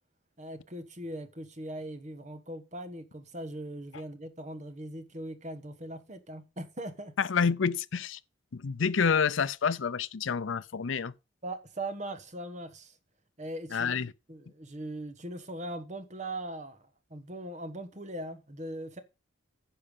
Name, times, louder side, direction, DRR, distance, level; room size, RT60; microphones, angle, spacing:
voice 1, 0.4-7.1 11.4-12.9 13.4-14.0 14.3-16.8 17.1-19.0, right 1 dB, 35° right, 1.3 m, -40 dB
voice 2, 7.2-8.2 8.5-11.1 13.7-14.1, left 6 dB, 75° left, 0.6 m, -28 dB
10.0 x 5.6 x 5.5 m
head